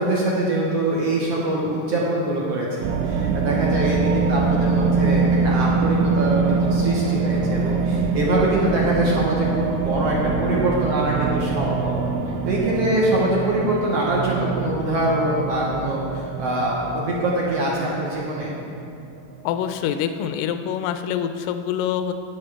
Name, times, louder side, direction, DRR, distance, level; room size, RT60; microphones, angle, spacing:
voice 1, 0.0-12.0 12.4-18.6, right 1 dB, 65° right, -4 dB, 1.6 m, -23 dB
sound 1, 2.8-19.7, right 4 dB, 85° right, 2.5 m, -24 dB
voice 2, 19.4-22.1, left 9 dB, 80° left, 8 dB, 2.0 m, -25 dB
11.0 x 9.6 x 3.4 m, 2.6 s
omnidirectional pair, 4.3 m